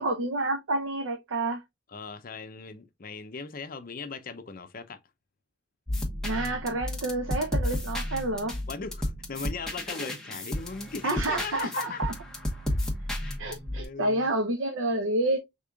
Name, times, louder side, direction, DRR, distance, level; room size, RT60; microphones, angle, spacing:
voice 1, 0.0-1.6 6.2-8.6 11.0-12.1 13.4-15.4, right 2 dB, 90° right, 0.7 m, -29 dB
voice 2, 1.9-5.0 8.7-12.0 12.7-12.8 13.2-14.3, left 4 dB, 45° left, 0.6 m, -38 dB
sound 1, 5.9-13.8, left 1 dB, 5° left, 1.1 m, -33 dB
5.3 x 3.6 x 2.4 m
head